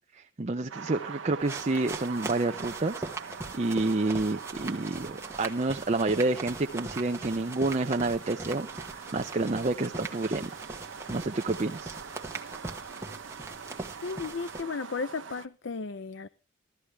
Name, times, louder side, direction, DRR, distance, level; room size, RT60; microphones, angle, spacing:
voice 1, 0.1-10.6 11.1-12.0, right 2 dB, 35° right, 6 dB, 0.6 m, -29 dB
sound 1, 0.7-15.5, right 6 dB, 70° right, 0.9 m, -43 dB
sound 2, 1.4-14.6, right 3 dB, 15° right, 1.2 m, -41 dB
voice 2, 14.0-16.3, left 4 dB, 65° left, 14 dB, 0.6 m, -34 dB
16.5 x 13.0 x 3.3 m, 0.31 s
head